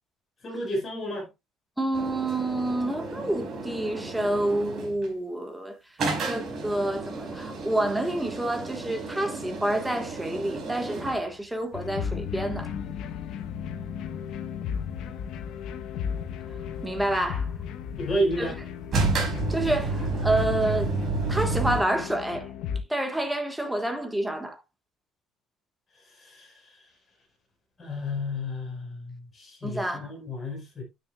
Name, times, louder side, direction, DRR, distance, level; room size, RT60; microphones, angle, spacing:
voice 1, 0.4-1.3 18.0-18.6 26.2-26.5 27.8-30.8, equal, 25° left, 5.0 m, -31 dB
voice 2, 1.8-5.7 6.2-12.7 16.8-17.5 18.4-18.5 19.5-20.9 21.3-22.5 22.9-24.6 29.6-30.1, right 1 dB, 5° right, 1.4 m, -28 dB
sound 1, 1.9-5.1 6.0-11.3 18.9-21.8, right 3 dB, 40° right, 5.0 m, -31 dB
sound 2, 11.7-22.8, left 7 dB, 65° left, 1.0 m, -35 dB
9.6 x 9.5 x 2.4 m
cardioid pair, 165°, 0 cm